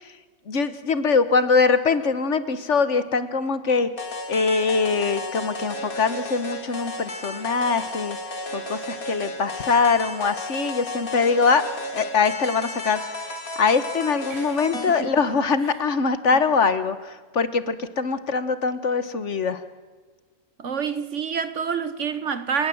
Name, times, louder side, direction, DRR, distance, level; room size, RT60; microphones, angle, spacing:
voice 1, 0.5-3.9 4.3-8.2 8.5-11.6 11.9-19.6, left 5 dB, 55° left, 1.5 m, -23 dB
sound 1, 4.0-15.0, left 1 dB, 85° left, 3.0 m, -34 dB
voice 2, 14.3-15.1 16.3-16.4 20.6-22.7, right 6 dB, 60° right, 1.5 m, -28 dB
29.5 x 18.5 x 7.8 m
omnidirectional pair, 1.5 m